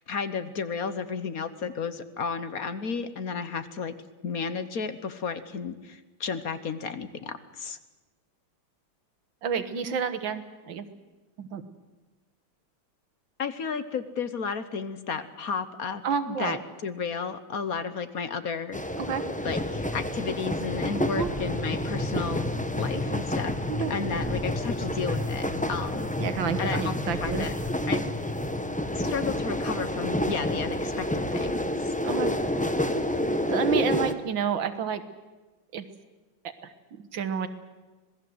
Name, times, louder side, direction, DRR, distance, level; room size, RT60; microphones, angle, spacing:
voice 1, 0.1-3.9 4.2-7.8 13.4-16.0 16.3-18.8 19.4-26.1 26.3-27.5 27.9-28.0 28.9-31.9, left 5 dB, 50° left, 12 dB, 1.4 m, -33 dB
voice 2, 9.4-10.9 11.4-11.7 16.0-16.6 19.0-19.2 21.1-21.3 23.7-23.9 26.2-27.5 32.0-32.3 33.5-35.0 35.7-35.8 36.6-37.5, right 7 dB, 70° right, 11 dB, 2.0 m, -30 dB
sound 1, 18.7-34.1, left 1 dB, 10° left, 0.4 m, -29 dB
sound 2, 21.2-27.8, right 1 dB, 75° left, 7.8 m, -45 dB
26.5 x 19.0 x 7.9 m, 1.2 s
omnidirectional pair, 2.2 m